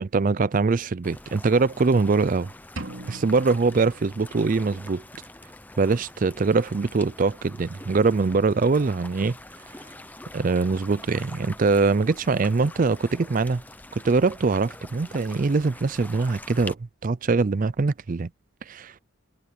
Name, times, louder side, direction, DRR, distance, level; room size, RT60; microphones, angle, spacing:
voice 1, 0.0-2.5 3.1-5.0 5.8-9.4 10.3-13.6 14.0-16.8 17.0-18.3 18.7-18.9, right 4 dB, 40° right, 0.4 m, -23 dB
sound 1, 1.0-16.7, left 2 dB, 10° left, 0.7 m, -44 dB
sound 2, 2.8-4.7, right 2 dB, 65° right, 3.0 m, -41 dB
head